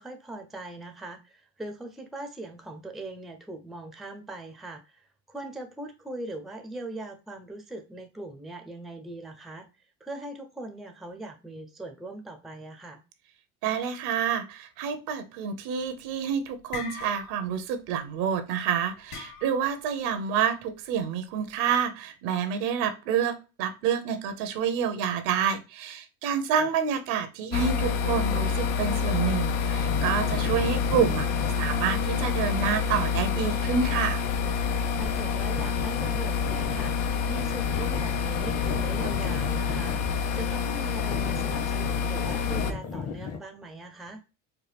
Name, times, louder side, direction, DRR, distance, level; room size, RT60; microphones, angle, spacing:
voice 1, 0.0-9.7 10.0-13.0 26.6-26.7 35.0-40.0 40.3-44.2, right 2 dB, ahead, 6 dB, 0.5 m, -40 dB
voice 2, 13.6-31.3 31.6-34.2, right 7 dB, 75° right, 9 dB, 0.9 m, -28 dB
sound 1, 15.8-16.2 16.5-17.6 17.8-18.1 19.1-19.8, left 5 dB, 60° left, 2.4 m, -40 dB
sound 2, 27.5-42.7, left 6 dB, 80° left, 0.7 m, -27 dB
sound 3, 29.8-43.4, left 5 dB, 40° left, 1.0 m, -38 dB
4.6 x 2.2 x 3.3 m, 0.29 s
supercardioid pair, 95°, 42 cm